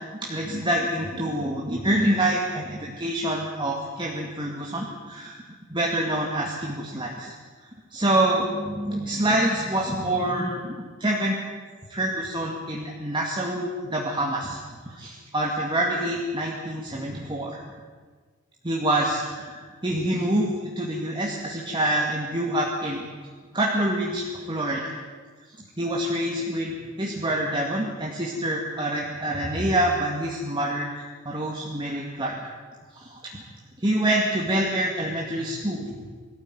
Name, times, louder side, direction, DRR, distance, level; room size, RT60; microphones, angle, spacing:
voice 1, 0.2-5.4 5.7-7.3 7.9-11.4 11.9-14.6 14.9-17.7 18.6-23.1 23.5-24.9 25.8-30.9 31.2-32.4 32.9-33.4 33.8-35.9, right 1 dB, 25° right, -2 dB, 2.2 m, -26 dB
22.0 x 14.0 x 9.5 m, 1.5 s
head